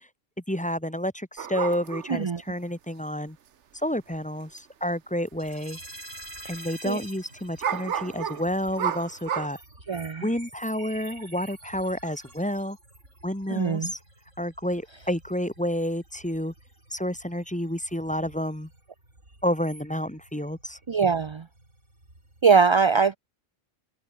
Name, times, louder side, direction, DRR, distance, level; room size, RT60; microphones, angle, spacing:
voice 1, 0.5-3.4 3.8-5.8 6.5-9.6 10.2-12.8 13.2-14.0 14.4-16.5 16.9-18.7 19.4-20.8, equal, 5° left, 1.6 m, -30 dB
sound 1, 1.4-2.2 4.1-4.2 4.6-4.7 5.3-5.5 5.8-5.9 7.6-9.5, right 8 dB, 70° right, 1.3 m, -31 dB
voice 2, 2.1-2.4 6.8-7.0 9.9-10.2 13.5-13.9 20.9-21.4 22.4-23.2, right 5 dB, 40° right, 0.4 m, -22 dB
sound 2, 5.4-22.4, right 1 dB, 90° right, 7.9 m, -49 dB
open air
omnidirectional pair, 1.2 m